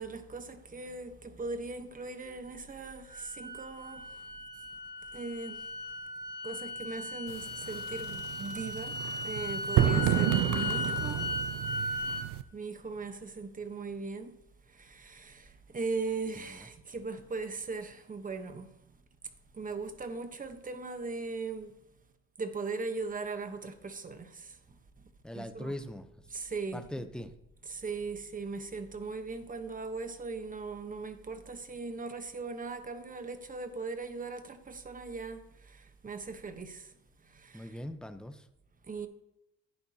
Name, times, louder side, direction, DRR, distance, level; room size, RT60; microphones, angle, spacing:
voice 1, 0.0-4.3 5.1-5.6 6.4-14.4 14.7-18.7 19.5-21.7 22.4-24.6 25.3-25.7 26.3-26.8 27.6-36.9 37.2-37.8 38.9-39.1, right 4 dB, 25° right, 1.2 m, -39 dB
sound 1, 3.1-12.3, left 2 dB, 35° left, 1.5 m, -37 dB
sound 2, 7.3-12.4, right 13 dB, 75° right, 0.6 m, -31 dB
voice 2, 9.7-10.1 25.2-26.1 26.7-27.3 37.5-38.4, left 1 dB, 5° left, 0.9 m, -39 dB
11.0 x 9.0 x 2.9 m
supercardioid pair, 80°, 30 cm